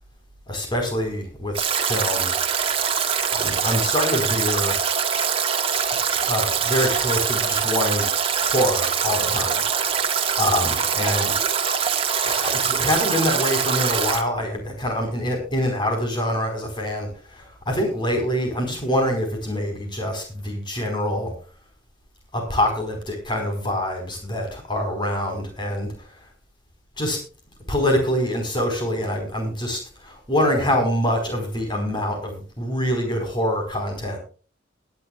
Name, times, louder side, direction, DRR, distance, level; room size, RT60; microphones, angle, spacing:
voice 1, 0.5-2.3 3.3-4.8 6.2-8.1 8.4-9.6 10.4-11.4 12.2-21.3 22.3-25.9 27.0-27.2 27.7-34.2, equal, 25° left, 3 dB, 4.7 m, -25 dB
Stream / Drip / Trickle dribble, 1.5-14.2, right 7 dB, 30° right, 1.8 m, -23 dB
20.5 x 11.0 x 2.4 m, 0.36 s
head